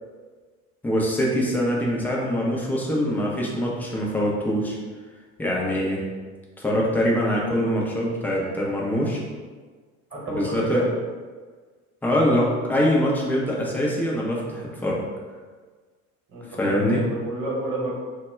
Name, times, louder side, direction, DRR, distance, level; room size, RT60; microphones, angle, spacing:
voice 1, 0.8-4.8 5.4-6.0 6.6-9.2 10.3-10.8 12.0-15.0 16.6-17.0, equal, 5° left, -4 dB, 0.3 m, -23 dB
voice 2, 10.1-10.9 16.3-17.9, right 1 dB, 30° right, -4 dB, 1.0 m, -29 dB
2.2 x 2.0 x 3.3 m, 1.4 s
figure-of-eight pair, 65°, 41 cm